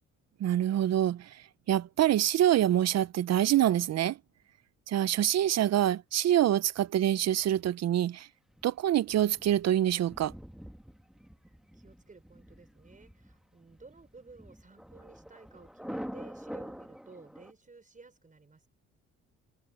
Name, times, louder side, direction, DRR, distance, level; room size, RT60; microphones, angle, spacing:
voice 1, 0.4-4.2 4.9-8.3 8.6-10.3, right 11 dB, 60° right, 0.6 m, -26 dB
Thunder, 8.5-17.5, equal, ahead, 1.8 m, -46 dB
voice 2, 11.7-18.7, right 4 dB, 25° right, 5.5 m, -54 dB
cardioid pair, 90°, 30 cm